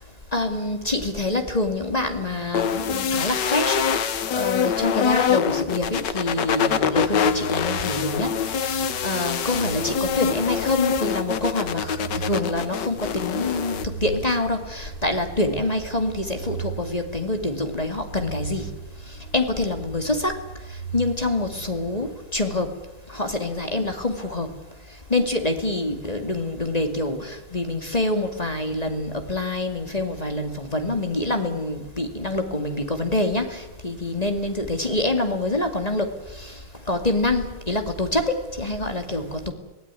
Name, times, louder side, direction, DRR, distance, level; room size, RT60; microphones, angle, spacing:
voice 1, 0.3-3.8 4.3-8.3 8.5-18.7 19.3-20.3 20.9-22.7 23.1-24.5 25.1-36.1 36.4-36.5 36.9-39.5, left 2 dB, 20° left, 6 dB, 2.2 m, -26 dB
sound 1, 2.5-13.8, left 7 dB, 60° left, 1.6 m, -25 dB
sound 2, 5.9-22.7, right 6 dB, 65° right, 3.7 m, -39 dB
25.0 x 17.5 x 9.8 m, 1.1 s
omnidirectional pair, 2.4 m